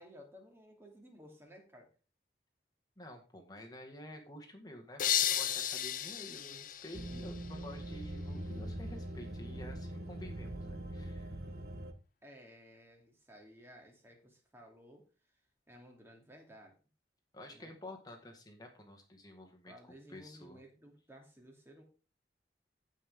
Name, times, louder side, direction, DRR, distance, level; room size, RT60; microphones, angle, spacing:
voice 1, 0.0-1.9 12.2-15.0 15.7-16.7 17.5-17.7 19.7-21.8, equal, 15° right, 1 dB, 2.6 m, -56 dB
voice 2, 3.0-11.3 17.3-20.6, left 1 dB, 20° left, 2 dB, 1.8 m, -50 dB
sound 1, 5.0-7.8, left 10 dB, 50° left, 0.7 m, -34 dB
sound 2, 6.9-11.9, right 1 dB, 60° right, 1.2 m, -42 dB
16.0 x 5.6 x 3.7 m, 0.33 s
head